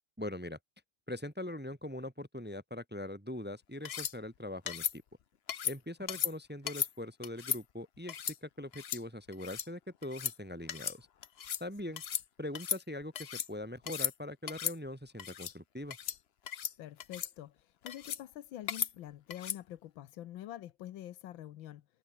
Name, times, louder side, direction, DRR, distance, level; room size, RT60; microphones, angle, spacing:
voice 1, 0.2-0.6 1.1-5.0 5.6-8.2 8.4-11.1 11.6-12.0 12.4-16.0, left 1 dB, 5° right, 1.1 m, -42 dB
sound 1, 3.9-4.1 4.7-5.0 5.5-5.8 6.1-6.3 6.7-6.9 7.2-7.6 8.1-8.4 8.7-9.0 9.3-9.7 10.0-10.4 10.7-11.0 11.2-11.6 12.0-12.3 12.5-13.5 13.8-14.1 14.5-14.8 15.2-15.5 15.9-16.2 16.5-16.7 17.0-17.3 17.9-18.2 18.7-18.9 19.3-19.6, left 9 dB, 65° left, 0.6 m, -36 dB
voice 2, 16.8-21.9, left 13 dB, 80° left, 1.6 m, -46 dB
omnidirectional pair, 2.1 m